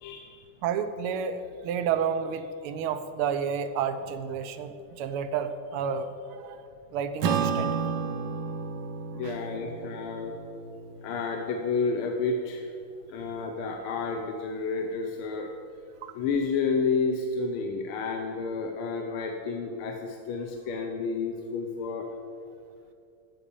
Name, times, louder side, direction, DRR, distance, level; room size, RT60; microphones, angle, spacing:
voice 1, 0.6-7.8 9.2-9.4 16.0-16.1, right 7 dB, 90° right, 10 dB, 1.6 m, -31 dB
Acoustic guitar / Strum, 7.2-11.9, right 6 dB, 70° right, 1.3 m, -32 dB
voice 2, 9.1-10.3 11.0-12.7 13.1-15.5 16.1-22.1, left 4 dB, 80° left, 3 dB, 1.6 m, -30 dB
13.5 x 5.0 x 7.0 m, 2.4 s
omnidirectional pair, 2.4 m